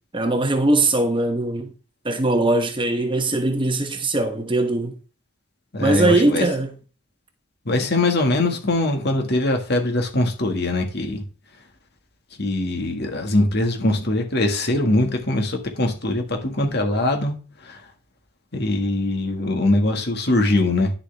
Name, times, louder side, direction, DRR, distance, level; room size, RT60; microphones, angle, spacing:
voice 1, 0.1-1.7 2.0-5.0 5.8-6.7, right 2 dB, 25° right, 1.1 m, -20 dB
voice 2, 5.7-6.5 7.7-11.2 12.4-17.3 17.7-17.8 18.5-20.9, left 2 dB, 55° left, 1.9 m, -22 dB
10.5 x 6.9 x 3.5 m
head